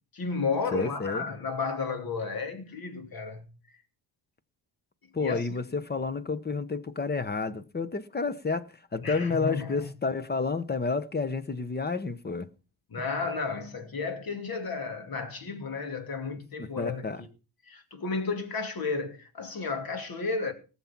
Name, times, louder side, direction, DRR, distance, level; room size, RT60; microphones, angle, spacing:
voice 1, 0.1-3.5 5.2-5.4 9.0-9.9 12.9-17.1 17.7-20.5, left 4 dB, 55° left, 2.7 m, -32 dB
voice 2, 0.7-1.3 5.1-12.5 16.6-17.2, left 4 dB, 25° left, 0.8 m, -30 dB
19.0 x 7.2 x 5.9 m
wide cardioid pair, 140°, 43 cm